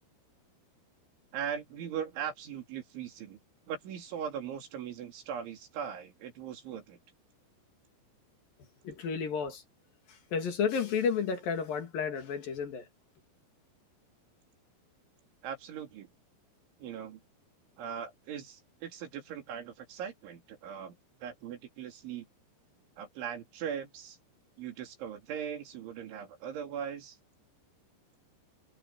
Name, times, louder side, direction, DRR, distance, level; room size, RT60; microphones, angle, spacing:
voice 1, 1.3-3.4 3.7-7.0 15.4-16.1 16.8-17.2 17.8-22.3 23.0-24.2 24.6-27.2, right 8 dB, 90° right, 5.7 m, -39 dB
voice 2, 8.8-9.6 10.1-12.9, left 6 dB, 55° left, 3.8 m, -32 dB
omnidirectional pair, 5.2 m